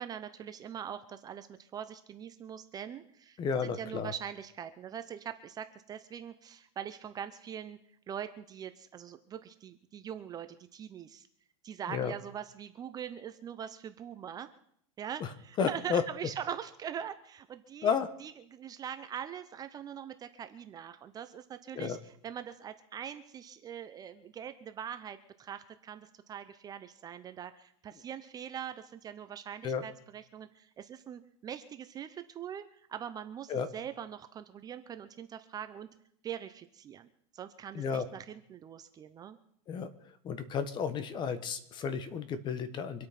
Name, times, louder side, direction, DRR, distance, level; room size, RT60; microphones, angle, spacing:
voice 1, 0.0-7.8 8.1-11.3 11.6-14.5 15.0-18.0 18.2-22.0 22.2-35.9 36.2-37.1 37.3-39.4, right 9 dB, 20° right, 10 dB, 0.8 m, -42 dB
voice 2, 3.4-4.1 11.9-12.1 15.2-15.3 15.6-16.0 17.8-18.1 21.7-22.0 29.6-29.8 33.5-33.7 37.7-38.1 39.7-43.1, left 6 dB, 25° left, 12 dB, 1.4 m, -32 dB
25.0 x 8.6 x 5.9 m, 0.66 s
supercardioid pair, 150°, 17 cm